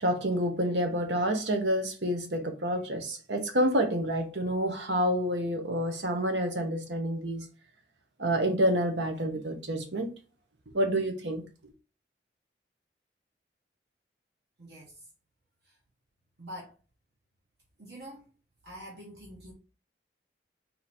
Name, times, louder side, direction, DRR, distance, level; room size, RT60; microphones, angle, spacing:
voice 1, 0.0-7.4 8.2-10.1 10.7-11.7, equal, 85° right, 1.0 m, -28 dB
voice 2, 14.6-14.9 16.4-16.7 17.8-18.3 18.6-19.5, equal, 70° right, 1.2 m, -45 dB
3.9 x 2.9 x 4.2 m
head